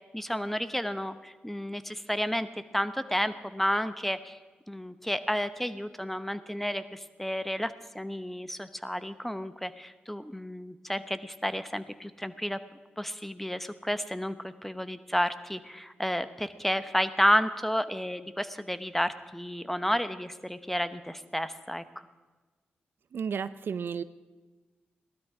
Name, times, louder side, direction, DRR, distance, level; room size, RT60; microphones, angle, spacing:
voice 1, 0.1-2.5 2.7-4.4 4.7-12.6 13.0-21.8, equal, 5° left, 12 dB, 0.9 m, -31 dB
voice 2, 23.1-24.0, right 6 dB, 70° right, 15 dB, 0.5 m, -32 dB
16.0 x 12.5 x 4.9 m, 1.3 s
cardioid pair, 50°, 4 cm